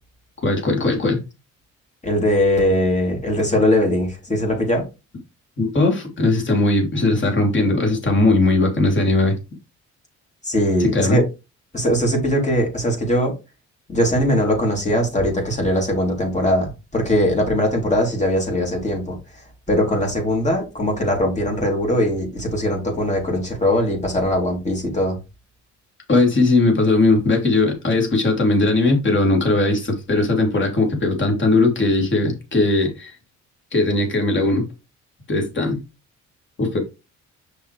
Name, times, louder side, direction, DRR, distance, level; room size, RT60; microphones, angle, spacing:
voice 1, 0.4-1.2 5.6-9.4 10.8-11.2 26.1-33.1 33.7-34.6 35.3-35.8 36.6-36.8, left 2 dB, 40° left, 3.5 m, -19 dB
voice 2, 2.0-4.8 10.4-11.2 11.7-13.3 13.9-19.4 19.7-25.2, equal, 25° left, 3.7 m, -20 dB
6.4 x 6.1 x 3.5 m
cardioid pair, 90°, 30 cm